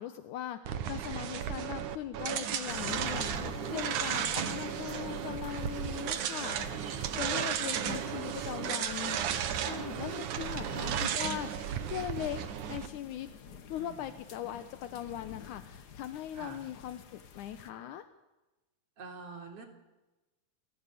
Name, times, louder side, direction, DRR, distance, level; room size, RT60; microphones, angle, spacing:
voice 1, 0.0-3.3 3.7-13.3 13.7-18.1, left 11 dB, 80° left, 10 dB, 2.5 m, -40 dB
sound 1, 0.6-12.9, right 9 dB, 80° right, 2.9 m, -34 dB
sound 2, 2.7-17.7, left 7 dB, 55° left, 1.1 m, -49 dB
voice 2, 3.1-3.4 10.4-10.7 13.7-14.0 16.3-16.7 19.0-19.7, right 3 dB, 50° right, 3 dB, 4.5 m, -48 dB
28.0 x 19.5 x 9.3 m, 1.1 s
omnidirectional pair, 3.5 m